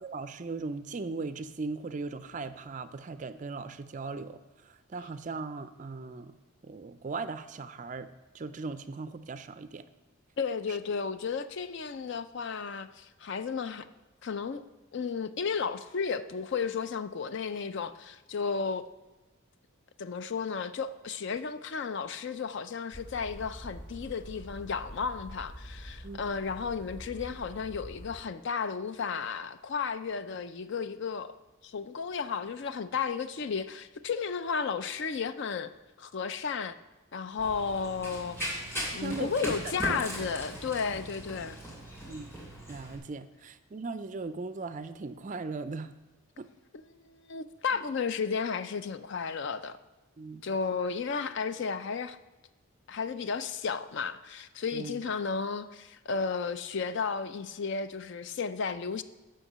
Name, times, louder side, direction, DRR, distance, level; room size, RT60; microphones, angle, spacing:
voice 1, 0.0-4.4 4.7-6.3 6.6-9.8 10.7-10.8 26.0-26.2 39.0-39.5 42.1-42.3 42.7-45.9 46.4-46.5 50.2-50.5 54.7-55.0, right 3 dB, 35° right, 0.4 m, -38 dB
voice 2, 10.4-13.9 14.2-14.6 14.9-18.8 20.0-31.3 31.6-35.7 36.0-36.8 37.1-38.7 38.9-41.6 46.7-49.8 50.4-52.2 52.9-59.0, left 5 dB, 55° left, 0.4 m, -33 dB
sound 1, 22.9-28.2, equal, 35° left, 2.7 m, -46 dB
Run, 37.4-43.0, equal, 10° left, 2.3 m, -38 dB
8.3 x 5.8 x 7.3 m
head